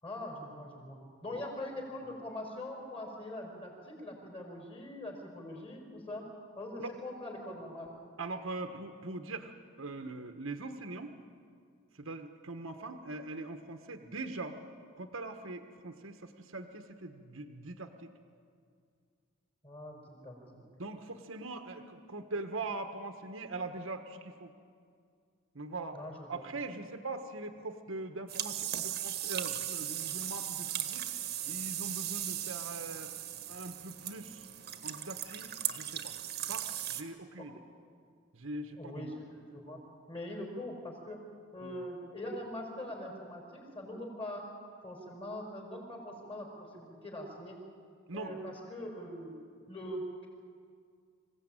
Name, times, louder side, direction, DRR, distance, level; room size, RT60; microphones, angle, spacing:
voice 1, 0.0-6.2 6.5-7.9 19.6-20.3 25.9-26.4 37.4-37.5 38.8-41.2 41.5-44.4 44.8-47.6 48.1-49.4 49.7-50.3, left 1 dB, 25° left, 0 dB, 5.1 m, -42 dB
voice 2, 8.2-9.5 9.8-11.1 11.9-14.6 15.0-18.1 20.5-24.5 25.5-26.0 26.3-31.1 31.5-33.1 33.5-34.5 34.8-36.1 36.5-37.5 38.3-39.2 41.6-41.8 48.1-48.3, right 2 dB, 65° right, 6 dB, 1.3 m, -42 dB
sound 1, 28.3-37.0, right 11 dB, 45° right, 1.4 m, -37 dB
26.0 x 16.0 x 9.1 m, 2.2 s
head